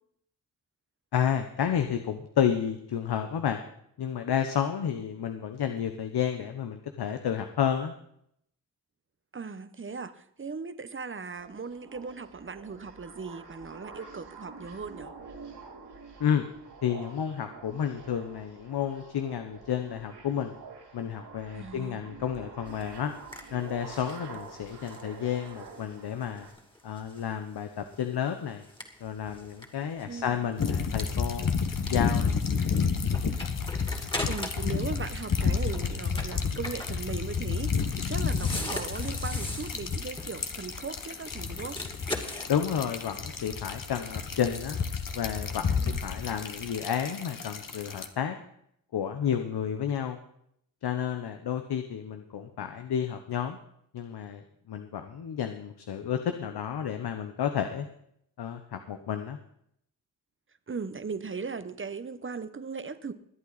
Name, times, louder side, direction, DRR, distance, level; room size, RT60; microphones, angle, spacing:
voice 1, 1.1-3.6 4.0-7.9 16.2-16.5 16.8-20.5 20.9-23.1 23.5-26.5 26.8-28.6 29.0-31.5 31.9-32.4 42.5-44.8 45.1-48.4 48.9-50.2 50.8-53.6 53.9-54.4 54.7-57.9 58.4-59.4, left 8 dB, 70° left, 7 dB, 1.0 m, -31 dB
voice 2, 9.3-15.1 21.5-22.0 30.1-30.5 33.9-41.8 45.8-46.0 60.7-63.1, right 4 dB, 30° right, 12 dB, 1.1 m, -38 dB
sound 1, 11.2-26.5, right 4 dB, 70° right, 3.0 m, -47 dB
sound 2, 22.7-34.8 35.1-42.5, left 1 dB, 10° left, 2.7 m, -42 dB
sound 3, 30.6-48.1, left 5 dB, 50° left, 1.5 m, -31 dB
22.5 x 8.5 x 4.1 m, 0.72 s
cardioid pair, 55°, 40 cm